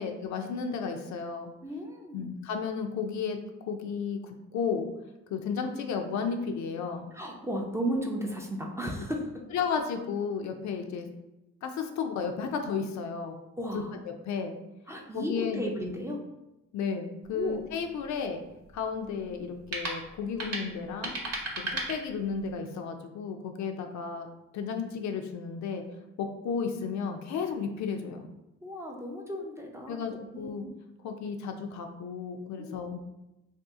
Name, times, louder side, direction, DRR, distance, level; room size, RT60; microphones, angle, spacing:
voice 1, 0.0-1.5 2.1-3.4 3.6-4.8 5.3-7.1 9.5-11.1 11.6-13.3 13.7-13.8 14.2-14.6 15.1-15.6 16.7-18.4 18.7-21.1 21.6-24.3 24.5-25.8 26.2-28.3 29.9-30.6 31.0-33.0, left 6 dB, 70° left, 5 dB, 0.5 m, -33 dB
voice 2, 1.6-2.3 7.1-9.3 13.6-13.9 14.9-16.2 17.3-17.6 28.6-30.7 32.6-32.8, equal, 10° right, 1 dB, 0.4 m, -34 dB
sound 1, 17.2-22.6, right 2 dB, 55° right, 0.9 m, -38 dB
2.7 x 2.3 x 3.5 m, 0.95 s
cardioid pair, 90°, 30 cm